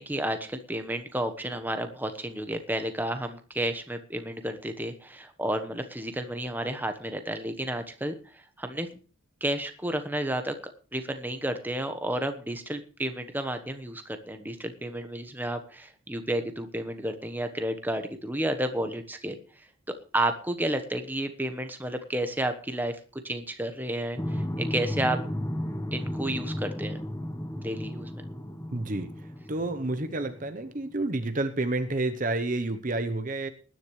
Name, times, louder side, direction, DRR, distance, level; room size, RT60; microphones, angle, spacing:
voice 1, 0.0-8.9 9.4-10.6 10.9-25.2 25.9-27.0 27.6-28.3, right 1 dB, 10° right, 8 dB, 1.1 m, -31 dB
sound 1, 24.2-30.7, equal, 10° left, 1.0 m, -34 dB
voice 2, 28.7-29.1 29.5-33.5, right 2 dB, 35° right, 8 dB, 0.8 m, -29 dB
20.0 x 10.5 x 3.2 m, 0.38 s
head